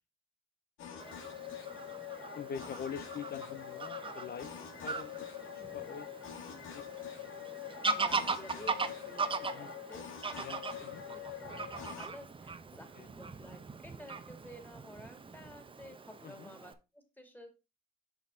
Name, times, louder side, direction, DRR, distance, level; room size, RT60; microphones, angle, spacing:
sound 1, 0.8-12.1, left 9 dB, 85° left, 1.6 m, -45 dB
voice 1, 0.8-1.2 1.8-2.1 7.9-10.6 11.1-17.5, left 1 dB, 10° left, 5 dB, 2.3 m, -52 dB
Fowl / Bird vocalization bird call bird song, 1.0-16.7, right 4 dB, 25° right, 0.8 m, -40 dB
voice 2, 2.3-6.2 6.4-6.8 9.4-9.7 10.3-11.0 13.0-13.1 16.2-16.5, left 7 dB, 50° left, 10 dB, 0.6 m, -45 dB
6.5 x 6.1 x 3.7 m, 0.26 s
cardioid pair, 90°, 20 cm